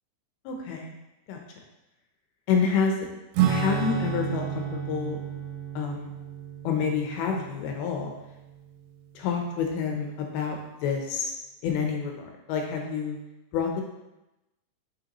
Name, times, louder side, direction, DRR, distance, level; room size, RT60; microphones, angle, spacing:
voice 1, 0.5-0.9 1.3-1.4 2.5-3.1 3.5-5.2 5.8-6.1 6.6-8.1 9.2-11.3 11.6-13.2 13.5-13.8, left 6 dB, 80° left, 2 dB, 2.5 m, -28 dB
Acoustic guitar / Strum, 3.3-9.3, right 9 dB, 85° right, 2.7 m, -31 dB
6.4 x 5.2 x 2.9 m, 0.97 s
omnidirectional pair, 4.7 m